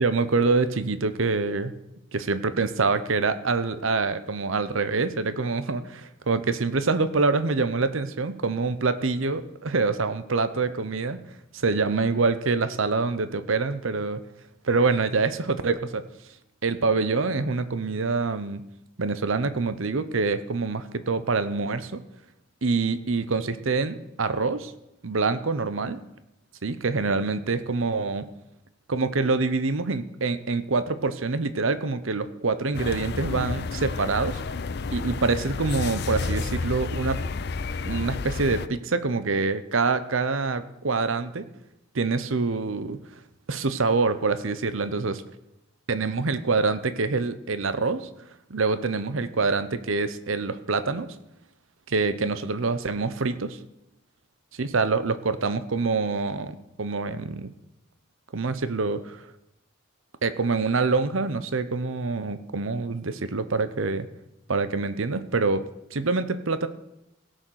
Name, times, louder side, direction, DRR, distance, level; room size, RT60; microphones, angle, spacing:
voice 1, 0.0-1.7 2.1-11.2 11.5-14.2 14.7-16.0 16.6-18.6 19.0-22.0 22.6-24.7 25.0-26.0 26.6-28.2 28.9-34.4 34.9-37.2 37.8-41.4 41.9-43.0 43.5-45.2 45.9-48.1 48.5-51.1 51.9-53.6 54.6-57.5 58.3-59.2 60.2-64.1 64.5-65.6 65.9-66.7, right 4 dB, 75° right, 12 dB, 0.8 m, -25 dB
sound 1, 32.7-38.7, left 4 dB, 50° left, 0.4 m, -30 dB
17.0 x 6.4 x 6.4 m, 0.87 s
head